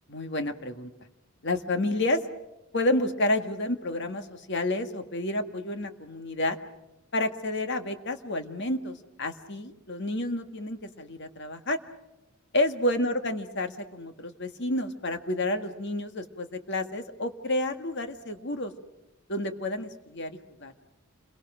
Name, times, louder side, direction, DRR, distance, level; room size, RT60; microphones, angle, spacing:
voice 1, 0.1-0.9 1.4-2.2 2.7-6.6 7.1-11.8 12.5-18.7 19.3-20.7, left 1 dB, 55° left, 7 dB, 1.8 m, -30 dB
29.5 x 23.0 x 6.3 m, 0.94 s
head